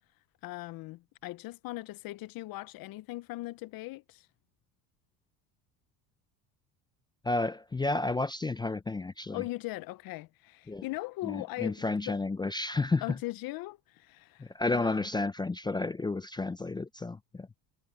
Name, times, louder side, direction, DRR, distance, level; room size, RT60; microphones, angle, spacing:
voice 1, 0.4-4.3 9.3-11.8 12.1-12.2 13.0-15.1, left 19 dB, 55° left, 0.8 m, -39 dB
voice 2, 7.2-9.4 10.7-10.8 11.2-13.0 14.4-17.5, left 3 dB, 10° left, 0.5 m, -31 dB
supercardioid pair, 105°, 41 cm